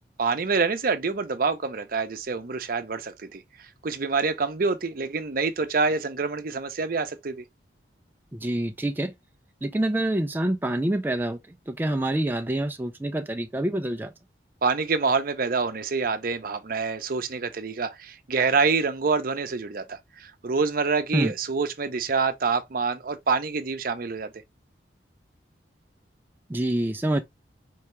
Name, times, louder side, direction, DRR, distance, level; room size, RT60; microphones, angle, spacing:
voice 1, 0.2-7.4 14.6-24.3, right 4 dB, 55° right, 0.7 m, -26 dB
voice 2, 8.3-9.1 9.6-14.1 21.1-21.3 26.5-27.2, right 1 dB, 10° right, 0.4 m, -26 dB
4.6 x 2.8 x 3.2 m
head